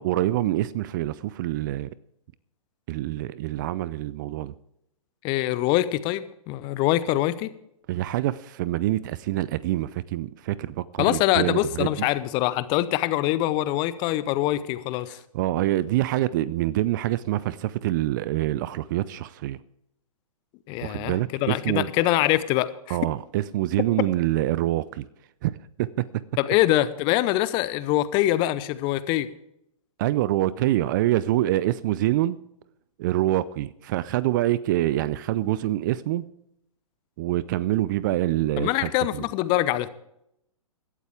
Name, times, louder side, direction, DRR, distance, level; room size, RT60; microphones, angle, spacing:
voice 1, 0.0-1.9 2.9-4.5 7.9-12.1 15.3-19.6 20.8-21.9 22.9-25.1 25.4-26.0 30.0-32.4 33.0-36.3 37.2-39.3, right 15 dB, 35° right, 0.5 m, -26 dB
voice 2, 5.2-7.5 11.0-15.2 20.7-21.2 21.4-23.0 26.4-29.3 38.6-39.9, left 15 dB, 25° left, 0.8 m, -24 dB
16.5 x 12.0 x 3.5 m
figure-of-eight pair, 120°, 18 cm